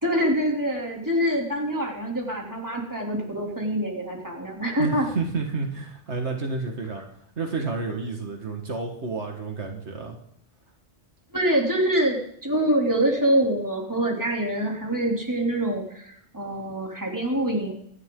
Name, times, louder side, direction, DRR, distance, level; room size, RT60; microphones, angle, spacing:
voice 1, 0.0-5.1 11.3-17.7, right 1 dB, 15° right, 0 dB, 3.1 m, -25 dB
voice 2, 4.8-7.0 7.4-10.2, right 4 dB, 85° right, 3 dB, 2.1 m, -30 dB
25.0 x 11.0 x 3.9 m, 0.71 s
omnidirectional pair, 1.1 m